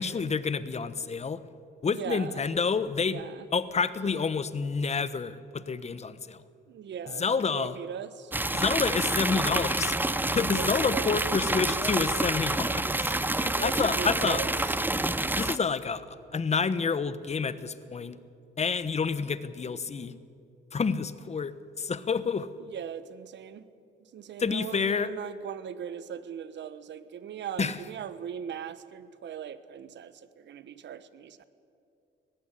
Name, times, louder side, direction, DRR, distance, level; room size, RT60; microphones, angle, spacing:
voice 1, 0.0-1.4 1.8-3.3 3.5-6.4 7.2-7.8 8.5-9.9 10.3-14.4 15.4-18.2 18.6-20.1 20.7-22.5 24.4-25.1 27.6-27.8, left 5 dB, 35° left, 14 dB, 1.1 m, -29 dB
voice 2, 1.9-2.3 3.1-3.4 6.7-7.2 7.5-8.3 10.5-11.2 13.4-14.5 22.7-23.6 24.1-31.4, right 8 dB, 65° right, 14 dB, 1.2 m, -39 dB
sound 1, 8.3-15.6, right 2 dB, 10° right, 0.8 m, -28 dB
19.5 x 15.0 x 9.9 m, 2.5 s
cardioid pair, 90°, 20 cm